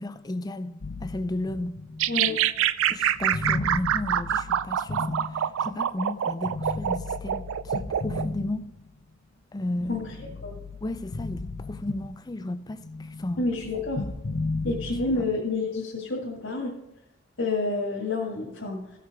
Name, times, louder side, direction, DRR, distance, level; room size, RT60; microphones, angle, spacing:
voice 1, 0.0-1.8 2.9-5.2 5.6-7.4 7.8-8.7 9.5-10.0 10.8-12.8 13.2-13.4 15.2-15.3, left 1 dB, 20° left, 0.4 m, -33 dB
sound 1, 0.8-5.9 6.4-9.1 9.6-12.4 12.7-15.4, left 3 dB, 75° left, 0.8 m, -35 dB
sound 2, 2.0-8.3, right 10 dB, 85° right, 0.3 m, -26 dB
voice 2, 9.9-10.5 13.4-14.0 14.6-16.7 17.4-18.8, left 3 dB, 90° left, 1.9 m, -29 dB
14.5 x 5.9 x 4.8 m
head